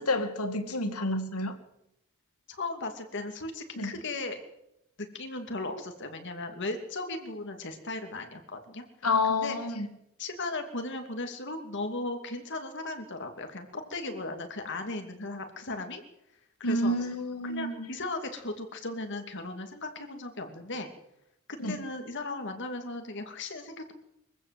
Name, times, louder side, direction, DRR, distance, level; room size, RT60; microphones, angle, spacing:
voice 1, 0.0-1.5 3.8-3.9 9.0-9.9 16.6-17.9 21.6-21.8, left 2 dB, 85° left, 2.2 m, -29 dB
voice 2, 2.5-4.4 5.0-8.8 9.3-9.6 10.2-16.0 16.6-16.9 17.4-20.9 21.5-23.9, left 2 dB, 55° left, 2.7 m, -37 dB
23.5 x 15.5 x 7.7 m
head